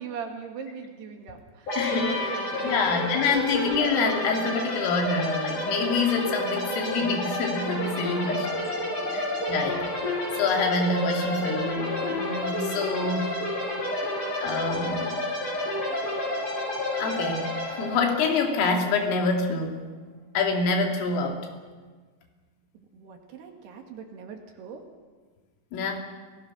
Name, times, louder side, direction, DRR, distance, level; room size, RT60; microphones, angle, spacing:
voice 1, 0.0-3.3 8.2-9.3 22.9-24.8, right 6 dB, 60° right, 3 dB, 3.5 m, -41 dB
sound 1, 1.7-19.3, left 1 dB, 40° left, 7.9 m, -30 dB
voice 2, 1.8-2.4 2.6-8.5 9.1-13.3 14.4-15.2 17.0-19.8 20.3-21.4 25.7-26.0, left 4 dB, 80° left, 2 dB, 5.1 m, -26 dB
28.5 x 18.5 x 6.1 m, 1.4 s
omnidirectional pair, 5.8 m